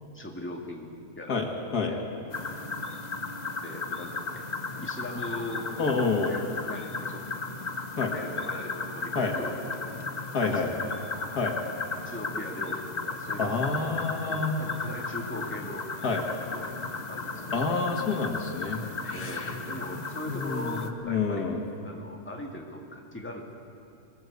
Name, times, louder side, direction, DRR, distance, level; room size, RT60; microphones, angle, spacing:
voice 1, 0.1-1.4 1.9-2.7 3.6-4.4 4.8-7.2 8.1-9.9 10.4-11.2 11.9-15.9 16.5-16.8 17.1-17.6 19.1-21.4 21.8-23.4, left 1 dB, 5° left, 0 dB, 2.2 m, -40 dB
voice 2, 1.3-1.9 5.8-6.3 8.0-8.1 9.2-9.3 10.3-10.7 11.4-11.6 13.4-14.6 16.0-16.2 17.5-19.6 20.3-21.6, left 4 dB, 65° left, 2 dB, 2.4 m, -28 dB
sound 1, 2.3-20.9, left 3 dB, 30° left, 1.1 m, -35 dB
23.0 x 19.5 x 8.2 m, 2.6 s
omnidirectional pair, 1.8 m